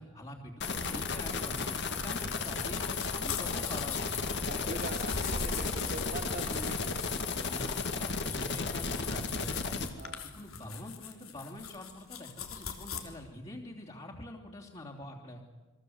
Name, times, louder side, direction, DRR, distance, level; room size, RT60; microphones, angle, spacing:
voice 1, 0.0-4.4 7.3-9.9 10.3-15.4, left 1 dB, 30° left, -5 dB, 3.2 m, -45 dB
sound 1, 0.6-9.9, left 4 dB, 55° left, 2.3 m, -34 dB
sound 2, 1.6-13.0, left 6 dB, 85° left, 3.4 m, -42 dB
voice 2, 4.5-7.0 10.0-10.3, right 2 dB, 45° right, 5 dB, 2.5 m, -42 dB
29.5 x 22.5 x 8.0 m, 1.3 s
head